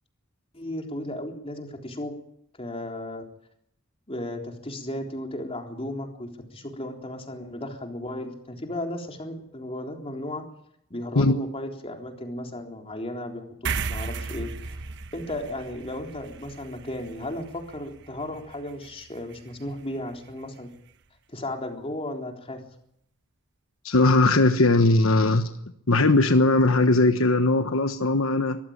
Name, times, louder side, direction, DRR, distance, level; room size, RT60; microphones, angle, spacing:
voice 1, 0.5-2.1 2.6-3.2 4.1-10.4 10.9-14.8 15.1-20.7 21.3-22.6, left 1 dB, 25° left, 3 dB, 3.8 m, -35 dB
sound 1, 13.6-20.4, right 4 dB, 55° right, 1.1 m, -37 dB
voice 2, 23.8-25.5 25.9-28.6, left 2 dB, 70° left, 8 dB, 1.3 m, -19 dB
24.0 x 15.0 x 8.8 m, 0.72 s
head